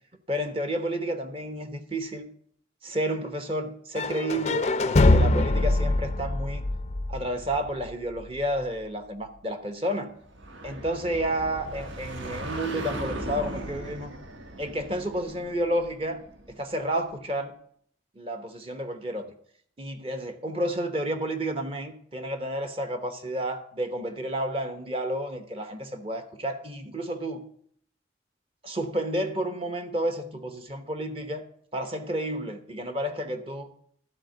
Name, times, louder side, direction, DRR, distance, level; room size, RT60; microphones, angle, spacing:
voice 1, 0.3-2.3 2.8-6.7 7.1-10.1 10.6-14.1 14.6-16.2 16.5-17.5 18.2-19.3 19.8-27.5 28.6-31.4 31.7-33.7, right 1 dB, 30° right, 7 dB, 0.9 m, -31 dB
sound 1, 4.0-7.9, left 2 dB, 35° left, 0.4 m, -23 dB
sound 2, 10.2-16.8, right 1 dB, 80° right, 1.3 m, -38 dB
12.5 x 4.4 x 7.8 m, 0.63 s
head